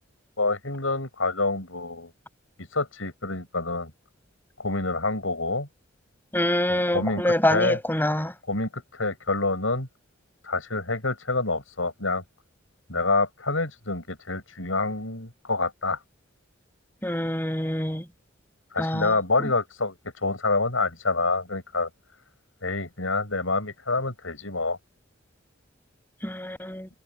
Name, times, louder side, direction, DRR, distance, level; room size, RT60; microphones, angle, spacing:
voice 1, 0.4-2.1 2.7-3.9 4.6-5.7 6.7-7.8 8.5-9.9 10.4-12.2 12.9-16.0 18.7-20.0 20.2-21.9 22.6-24.8, left 3 dB, 90° left, 7.2 m, -27 dB
voice 2, 6.3-8.3 17.0-18.1 18.8-19.1 19.4-19.5 26.2-26.9, left 1 dB, 10° left, 7.1 m, -25 dB
head